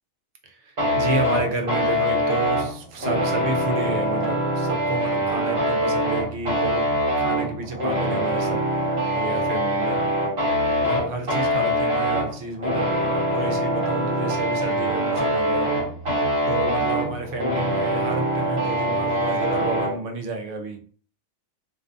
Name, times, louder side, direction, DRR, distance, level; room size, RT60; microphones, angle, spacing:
voice 1, 0.4-8.6 9.1-10.0 10.8-15.7 16.5-20.8, right 3 dB, 70° right, 4 dB, 0.8 m, -30 dB
sound 1, 0.8-19.9, equal, 50° right, 1.3 m, -24 dB
2.6 x 2.4 x 2.4 m, 0.43 s
omnidirectional pair, 1.4 m